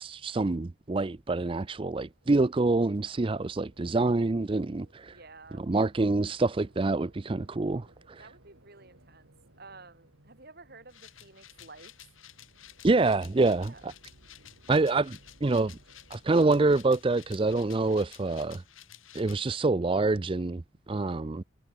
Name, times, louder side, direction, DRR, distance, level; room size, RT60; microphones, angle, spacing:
voice 1, 0.0-5.2 5.6-8.3 12.8-13.9 14.7-15.8 16.1-18.6 19.1-21.4, right 3 dB, 25° right, 0.4 m, -26 dB
sound 1, 1.9-18.9, right 1 dB, 80° right, 4.6 m, -61 dB
voice 2, 5.0-5.8 8.2-9.3 9.6-11.9 13.6-13.8, right 3 dB, 50° right, 4.2 m, -52 dB
sound 2, 10.9-19.4, left 11 dB, 85° left, 3.1 m, -53 dB
head